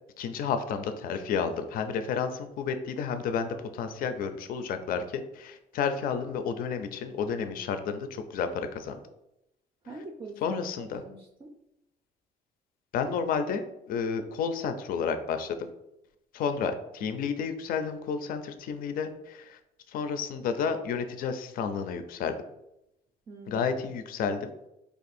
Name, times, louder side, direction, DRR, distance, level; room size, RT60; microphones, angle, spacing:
voice 1, 0.2-9.0 10.4-11.0 12.9-15.7 16.3-19.6 19.9-22.4 23.5-24.5, left 6 dB, 60° left, 8 dB, 0.4 m, -31 dB
voice 2, 9.8-11.5 23.3-23.9, right 2 dB, 25° right, 2 dB, 0.4 m, -45 dB
2.6 x 2.4 x 4.1 m, 0.86 s
cardioid pair, 110°, 17 cm